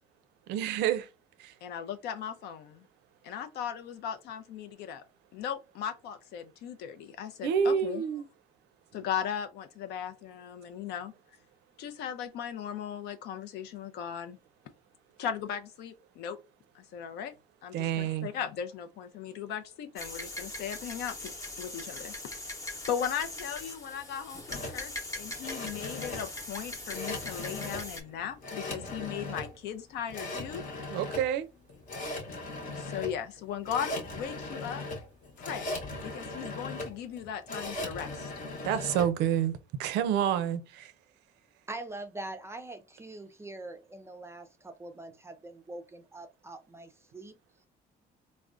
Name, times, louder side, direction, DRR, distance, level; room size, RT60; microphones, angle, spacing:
voice 1, 0.5-1.1 1.4-1.5 7.4-8.3 17.7-18.3 30.9-31.5 38.6-39.5 39.8-40.9, right 9 dB, 90° right, 0.4 m, -28 dB
voice 2, 1.6-2.8 3.2-5.0 5.3-8.0 8.9-11.1 11.8-14.4 15.2-16.4 16.7-17.3 17.6-21.2 21.6-22.1 22.6-30.6 32.8-34.8 35.4-35.8 36.0-38.3, left 8 dB, 75° left, 0.5 m, -37 dB
sound 1, 20.0-28.0, left 2 dB, 20° left, 0.8 m, -41 dB
sound 2, 24.5-39.1, left 2 dB, 50° left, 0.9 m, -39 dB
voice 3, 41.7-47.3, right 2 dB, 15° right, 0.4 m, -43 dB
3.4 x 2.1 x 2.4 m
cardioid pair, 110°, 17 cm